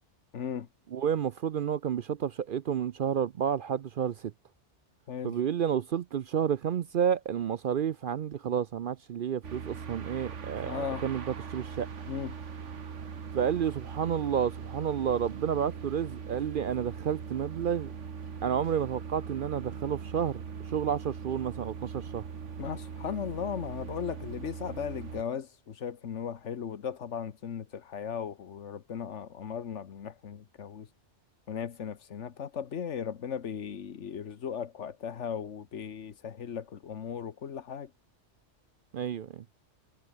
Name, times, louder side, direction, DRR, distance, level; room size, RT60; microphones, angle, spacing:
voice 1, 0.3-0.7 5.1-5.4 10.6-11.0 12.1-12.3 22.6-30.9 31.5-37.9, left 7 dB, 75° left, 1.4 m, -37 dB
voice 2, 0.9-4.3 5.2-11.9 13.3-17.9 18.4-20.4 20.7-22.2 38.9-39.4, right 8 dB, 60° right, 0.6 m, -30 dB
sound 1, 9.4-25.2, right 6 dB, 80° right, 1.8 m, -41 dB
omnidirectional pair, 1.2 m